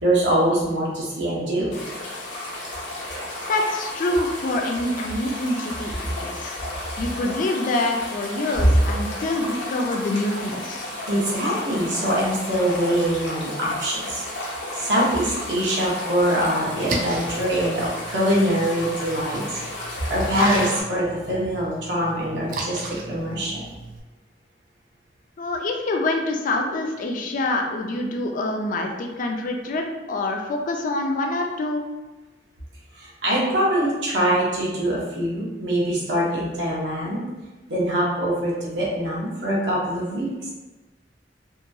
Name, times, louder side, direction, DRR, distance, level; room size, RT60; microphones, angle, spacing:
voice 1, 0.0-1.8 11.0-14.2 14.7-23.6 32.9-37.2 37.7-40.5, right 1 dB, 75° right, -5 dB, 0.9 m, -23 dB
sound 1, 1.7-20.8, left 1 dB, 75° left, 0.8 m, -33 dB
voice 2, 3.5-6.6 7.0-10.9 25.4-31.9, left 2 dB, 50° left, 2 dB, 0.4 m, -26 dB
Splash splatter, 16.6-24.0, right 2 dB, 50° right, 0.4 m, -35 dB
2.8 x 2.3 x 2.6 m, 1.2 s
head